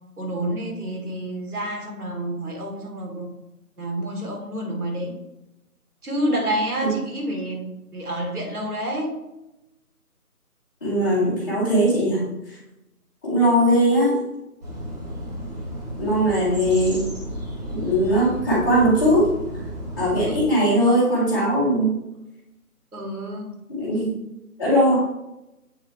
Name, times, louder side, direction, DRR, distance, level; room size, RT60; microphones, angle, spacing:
voice 1, 0.2-3.3 3.8-5.2 6.0-9.2 22.9-23.5, right 1 dB, 75° right, 2 dB, 1.7 m, -28 dB
voice 2, 10.8-12.2 13.2-14.2 16.0-17.0 17.7-19.3 20.0-21.9 23.7-24.1 24.6-25.0, equal, 15° left, -9 dB, 1.5 m, -19 dB
sound 1, 14.6-20.4, equal, 25° right, 1.3 m, -33 dB
7.9 x 4.1 x 3.2 m, 0.92 s
figure-of-eight pair, 160°, 45 cm